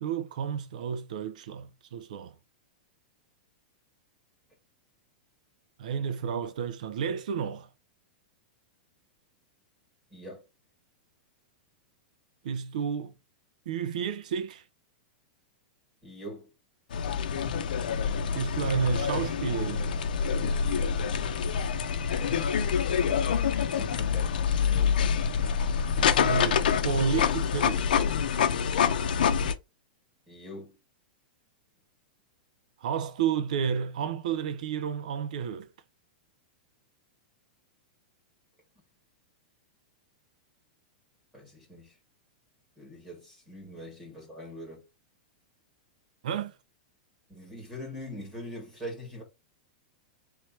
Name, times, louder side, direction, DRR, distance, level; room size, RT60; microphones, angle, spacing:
voice 1, 0.0-2.3 5.8-7.7 12.4-13.1 13.7-14.6 18.3-20.0 26.0-27.9 32.8-35.7 46.2-46.5, right 7 dB, 60° right, 0.6 m, -31 dB
voice 2, 10.1-10.4 16.0-16.5 23.2-24.3 24.7-25.0 30.3-30.8 41.3-42.0 42.8-44.8 47.3-49.2, equal, 5° right, 2.0 m, -43 dB
sound 1, 16.9-29.5, left 7 dB, 85° left, 0.7 m, -26 dB
3.4 x 3.2 x 4.3 m
supercardioid pair, 180°, 5 cm